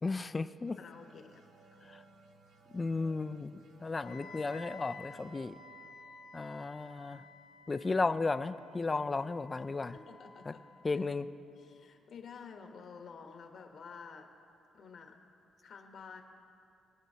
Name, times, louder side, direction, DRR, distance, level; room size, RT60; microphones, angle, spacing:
voice 1, 0.0-0.8 1.8-2.0 2.7-5.6 6.3-7.2 7.7-10.0 10.5-10.6 10.8-11.3, left 3 dB, 25° left, 12 dB, 0.3 m, -34 dB
sound 1, 0.7-7.9, right 3 dB, 80° right, 1.0 m, -61 dB
voice 2, 0.8-1.4 1.7-1.8 9.9-10.6 10.9-11.0 11.7-14.3 14.7-15.2 15.6-16.2, left 5 dB, 60° left, 4 dB, 1.1 m, -50 dB
Wind instrument woodwind instrument, 3.9-11.9, left 3 dB, 85° left, 1.3 m, -54 dB
21.5 x 7.5 x 2.8 m, 2.6 s
cardioid pair, 90°, 0 cm